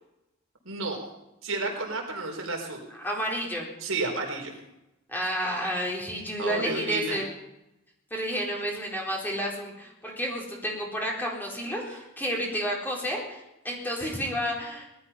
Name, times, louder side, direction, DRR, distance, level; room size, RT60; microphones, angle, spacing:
voice 1, 0.6-1.0 1.4-2.8 3.8-4.5 6.4-7.2 11.9-12.0, right 3 dB, 85° right, 1 dB, 4.3 m, -31 dB
voice 2, 3.0-3.7 5.1-7.3 8.1-14.9, equal, 10° left, -2 dB, 4.1 m, -31 dB
19.0 x 13.0 x 5.7 m, 0.91 s
head